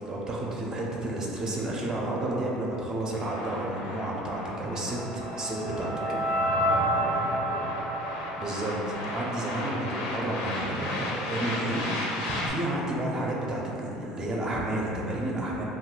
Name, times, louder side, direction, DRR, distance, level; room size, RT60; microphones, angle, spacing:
voice 1, 0.0-5.9 8.3-15.6, right 1 dB, 25° right, -3 dB, 0.4 m, -31 dB
sound 1, 3.1-12.5, left 1 dB, 90° left, 0.5 m, -36 dB
sound 2, 4.5-9.6, right 1 dB, 85° right, 0.4 m, -30 dB
voice 2, 5.9-8.0, left 2 dB, 35° left, -2 dB, 0.4 m, -43 dB
2.2 x 2.2 x 3.8 m, 3.0 s
cardioid pair, 135°, 3 cm